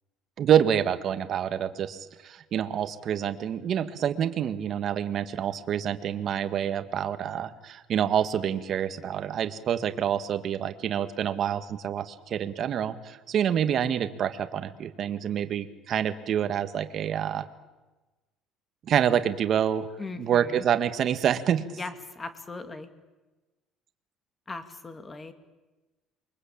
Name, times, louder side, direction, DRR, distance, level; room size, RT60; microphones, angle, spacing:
voice 1, 0.4-17.5 18.9-19.9 20.2-21.6, right 9 dB, 45° right, 10 dB, 1.8 m, -27 dB
voice 2, 20.0-20.7 21.8-22.9 24.5-25.3, left 3 dB, 20° left, 9 dB, 2.5 m, -39 dB
28.5 x 23.5 x 8.8 m, 1.1 s
cardioid pair, 150°, 0 cm